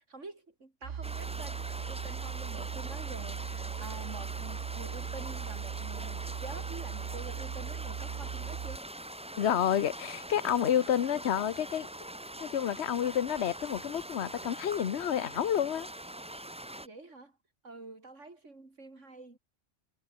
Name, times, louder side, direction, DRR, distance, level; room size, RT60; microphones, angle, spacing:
voice 1, 0.0-8.9 11.0-11.2 16.7-17.4 17.6-19.4, right 3 dB, 90° right, 4.2 m, -47 dB
sound 1, 0.8-8.8, right 8 dB, 60° right, 1.1 m, -38 dB
sound 2, 1.0-16.9, right 1 dB, 5° right, 0.9 m, -43 dB
voice 2, 9.4-11.9 12.4-15.9, left 9 dB, 65° left, 1.2 m, -29 dB
omnidirectional pair, 1.2 m